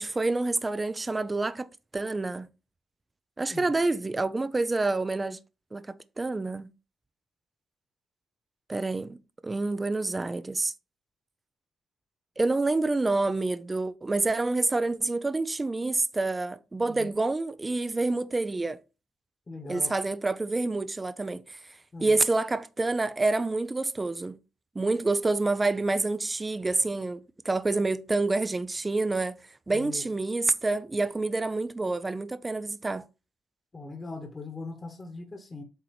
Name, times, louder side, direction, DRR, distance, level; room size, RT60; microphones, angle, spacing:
voice 1, 0.0-1.7 1.9-2.5 3.4-5.4 5.7-6.7 8.7-9.2 9.4-10.7 12.4-18.8 19.7-21.6 22.0-24.4 24.8-29.3 29.7-33.0, right 3 dB, 20° right, 0.5 m, -27 dB
voice 2, 19.5-19.9 21.9-22.2 29.7-30.0 33.7-35.6, left 3 dB, 25° left, 1.3 m, -40 dB
8.0 x 2.9 x 4.8 m
cardioid pair, 90°, 0 cm